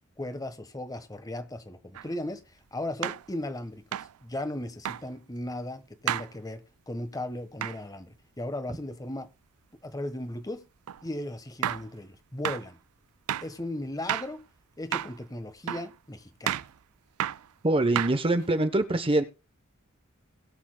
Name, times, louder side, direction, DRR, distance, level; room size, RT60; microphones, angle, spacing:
voice 1, 0.2-9.3 9.8-10.6 11.0-12.8 13.4-14.4 14.8-16.7, left 1 dB, 15° left, 1.3 m, -37 dB
sound 1, 1.9-2.1 3.0-3.3 3.9-4.2 4.8-5.0 6.1-6.3 7.6-7.8 10.9-11.0 11.6-11.9 12.4-12.7 13.3-13.5 14.1-14.3 14.9-15.2 15.7-15.9 16.5-16.7 17.2-17.5 18.0-18.5, right 11 dB, 85° right, 0.4 m, -31 dB
voice 2, 17.6-19.2, right 2 dB, 25° right, 0.9 m, -24 dB
21.0 x 7.2 x 2.3 m
head